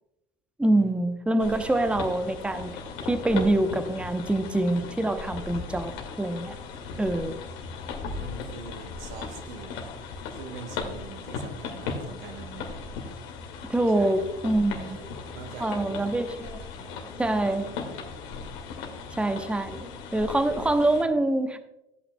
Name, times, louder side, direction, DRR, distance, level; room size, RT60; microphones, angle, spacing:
voice 1, 0.6-2.8 3.1-5.9 6.2-6.5 7.0-7.4 13.7-15.0 15.6-16.6 17.2-17.7 19.2-21.6, right 1 dB, 5° right, 8 dB, 0.8 m, -25 dB
sound 1, 1.4-21.0, left 5 dB, 65° left, 2.1 m, -38 dB
voice 2, 8.1-9.8 10.3-12.8 13.9-14.1 14.8-16.1 16.7-16.9 17.3-17.5, right 6 dB, 70° right, 7 dB, 1.2 m, -43 dB
15.5 x 8.4 x 2.3 m, 0.94 s
hypercardioid pair, 75°, 30 cm